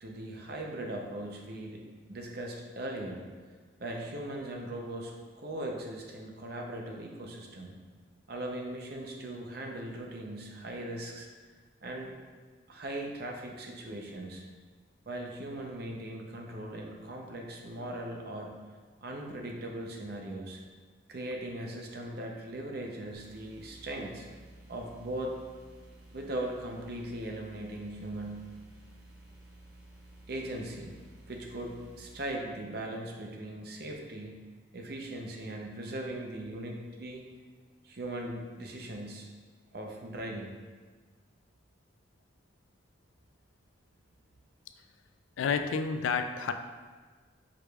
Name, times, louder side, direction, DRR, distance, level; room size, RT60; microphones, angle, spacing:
voice 1, 0.0-3.3 3.8-5.1 5.4-7.8 8.3-11.3 11.8-12.1 12.7-14.4 15.1-18.6 19.0-20.6 21.1-24.3 24.7-25.4 26.1-28.5 30.3-31.0 31.3-34.4 34.7-37.2 37.8-39.3 39.7-40.5, right 1 dB, 50° right, 1 dB, 0.6 m, -39 dB
sound 1, 23.1-32.3, right 1 dB, 85° right, 0.9 m, -54 dB
voice 2, 45.4-46.5, left 5 dB, 85° left, 8 dB, 0.3 m, -29 dB
4.8 x 4.7 x 2.3 m, 1.5 s
head